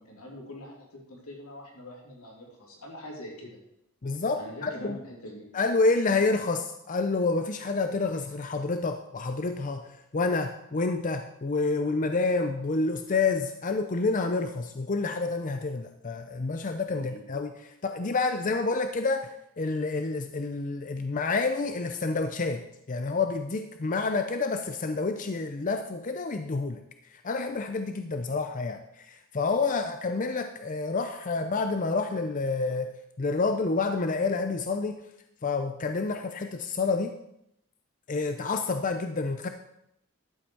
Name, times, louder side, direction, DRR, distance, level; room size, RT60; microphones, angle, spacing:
voice 1, 0.0-3.6 4.4-5.5 16.9-17.2, left 1 dB, 85° left, -1 dB, 2.8 m, -44 dB
voice 2, 4.0-5.0 5.5-26.8 27.1-32.9 33.2-35.0 35.4-37.1 38.1-39.5, left 3 dB, 35° left, 7 dB, 0.5 m, -28 dB
12.0 x 7.8 x 4.6 m, 0.80 s
head